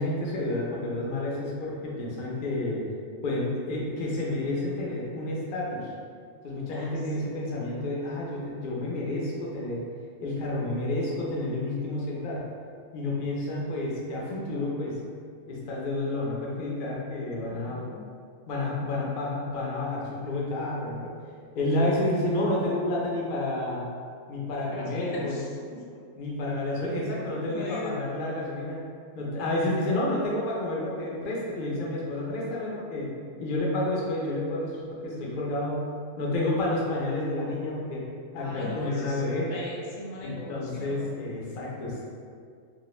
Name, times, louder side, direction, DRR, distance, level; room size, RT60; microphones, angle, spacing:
voice 1, 0.0-2.9 3.2-5.9 6.4-9.8 10.2-12.4 12.9-15.0 15.5-17.8 18.5-21.1 21.5-23.8 24.3-25.4 26.2-28.9 29.2-33.1 33.4-35.8 36.2-38.0 38.3-39.5 40.2-42.1, left 1 dB, 55° left, -4 dB, 0.6 m, -30 dB
voice 2, 17.5-18.1 24.7-25.8 27.4-28.0 38.3-41.2, left 1 dB, 80° left, -3 dB, 0.9 m, -39 dB
2.3 x 2.1 x 3.0 m, 2.1 s
omnidirectional pair, 1.3 m